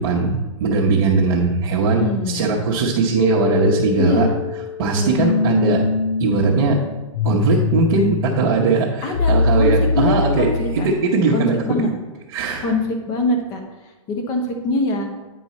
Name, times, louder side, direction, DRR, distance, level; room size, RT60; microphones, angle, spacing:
voice 1, 0.0-4.3 4.8-5.9 6.2-6.8 7.2-10.5 10.7-11.6 12.3-12.7, right 4 dB, 45° right, -6 dB, 1.0 m, -19 dB
voice 2, 1.8-2.5 4.0-4.3 4.9-5.3 9.0-10.9 11.3-11.9 12.6-13.6 14.1-15.1, left 2 dB, 20° left, 3 dB, 0.9 m, -23 dB
sound 1, 3.1-11.0, left 4 dB, 50° left, 0.5 m, -23 dB
9.4 x 4.5 x 4.2 m, 1.2 s
hypercardioid pair, 160°, 17 cm